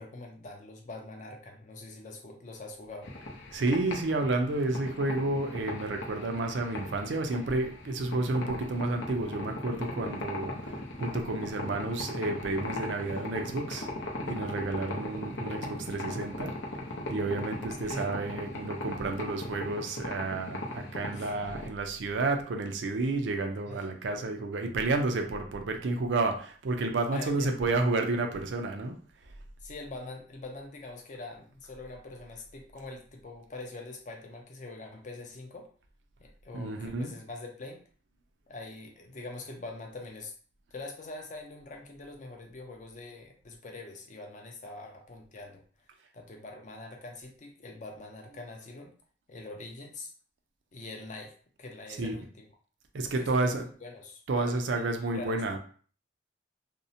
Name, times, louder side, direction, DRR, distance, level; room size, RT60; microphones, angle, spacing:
voice 1, 0.0-3.1 17.8-18.1 21.1-21.3 23.7-23.8 27.1-27.7 29.6-35.7 36.2-37.8 38.5-40.3 40.7-45.6 46.1-48.9 49.3-50.1 50.7-51.3 51.6-52.5 53.0-54.6 55.1-55.6, left 2 dB, 40° left, 2 dB, 0.5 m, -44 dB
sound 1, 3.0-21.7, left 1 dB, 85° left, 0.6 m, -38 dB
voice 2, 3.5-13.9 14.2-16.6 17.1-29.0 36.5-37.1 52.0-52.2 52.9-53.7 54.3-55.6, right 2 dB, 80° right, 4 dB, 0.4 m, -31 dB
2.6 x 2.0 x 2.7 m, 0.43 s
head